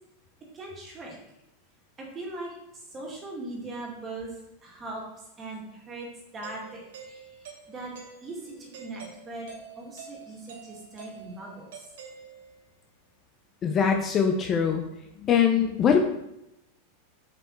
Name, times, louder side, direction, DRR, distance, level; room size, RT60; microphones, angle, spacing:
voice 1, 0.5-1.2 2.0-5.0 5.4-9.5 9.8-11.9, right 2 dB, 20° right, -1 dB, 2.2 m, -40 dB
Doorbell, 6.4-12.8, right 6 dB, 80° right, 2.4 m, -47 dB
voice 2, 13.6-14.8 15.2-16.0, left 7 dB, 25° left, 4 dB, 0.6 m, -22 dB
6.9 x 5.5 x 4.6 m, 0.85 s
supercardioid pair, 155°, 0 cm